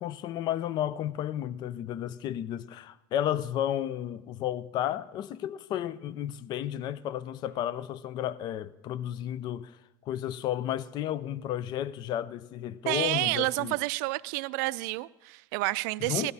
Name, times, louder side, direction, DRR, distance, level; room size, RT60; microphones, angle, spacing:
voice 1, 0.0-9.8 10.0-13.8 16.0-16.3, left 11 dB, 50° left, 0.5 m, -32 dB
voice 2, 12.9-16.3, right 22 dB, 85° right, 0.4 m, -29 dB
16.5 x 11.5 x 4.1 m
cardioid pair, 125°, 9 cm